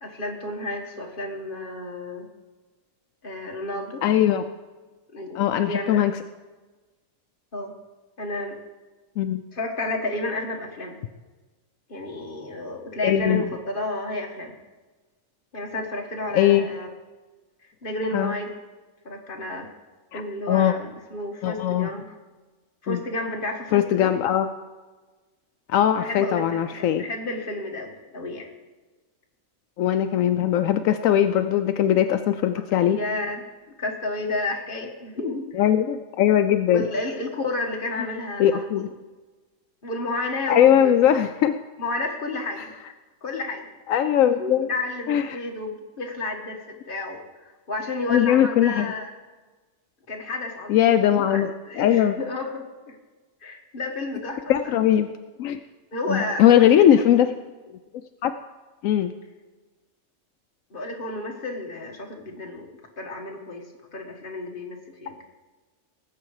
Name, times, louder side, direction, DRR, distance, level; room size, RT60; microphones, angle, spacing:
voice 1, 0.0-2.3 3.2-4.0 5.1-6.0 7.5-7.7 8.2-8.6 9.5-11.0 11.9-14.5 15.5-16.9 17.6-18.5 19.1-19.7 20.1-22.2 22.8-24.2 26.0-28.5 32.8-33.4 33.8-35.7 36.7-38.8 39.8-40.9 41.8-42.7 43.2-43.7 44.2-49.1 50.1-53.0 53.4-54.4 55.9-57.0 60.7-65.2, left 2 dB, 40° left, 1 dB, 1.8 m, -31 dB
voice 2, 4.0-4.4 5.3-6.1 9.2-9.4 13.0-13.5 16.3-16.7 18.1-18.3 20.1-20.2 20.5-20.7 21.4-21.9 22.9-23.0 23.7-24.5 25.7-27.0 29.8-33.0 35.5-36.9 38.4-38.9 40.5-41.5 43.9-44.7 45.1-45.3 48.1-48.9 50.7-52.1 54.5-55.1 55.4-55.6 56.1-57.3 58.2-58.3 58.8-59.1, left 10 dB, 80° left, 9 dB, 1.0 m, -20 dB
18.5 x 7.8 x 4.8 m, 1.3 s
omnidirectional pair, 1.4 m